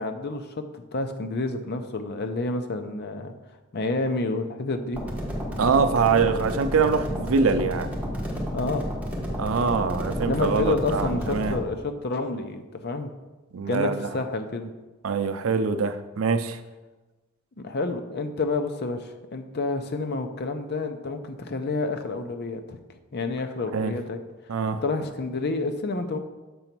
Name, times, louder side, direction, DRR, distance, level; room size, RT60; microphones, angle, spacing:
voice 1, 0.0-3.3 3.7-5.0 8.5-8.9 10.3-13.1 13.7-14.7 17.6-22.8 23.1-24.2 24.8-26.2, left 3 dB, 55° left, 7 dB, 0.6 m, -29 dB
sound 1, 4.9-11.6, equal, 5° right, 1.4 m, -31 dB
voice 2, 5.6-7.9 9.4-11.6 13.5-14.1 15.0-16.6 23.7-23.9 24.5-24.8, right 5 dB, 80° right, 10 dB, 0.5 m, -24 dB
7.0 x 3.9 x 5.9 m, 1.2 s
head